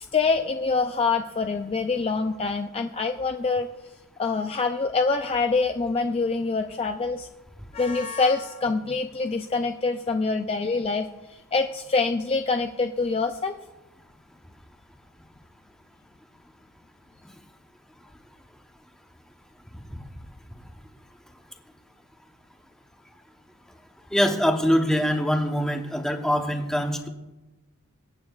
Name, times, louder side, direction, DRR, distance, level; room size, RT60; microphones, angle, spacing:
voice 1, 0.1-3.7 4.2-7.3 7.7-13.6, left 4 dB, 25° left, 6 dB, 0.4 m, -25 dB
voice 2, 24.1-27.1, equal, 5° left, 4 dB, 0.9 m, -23 dB
24.5 x 8.6 x 2.4 m, 1.1 s
head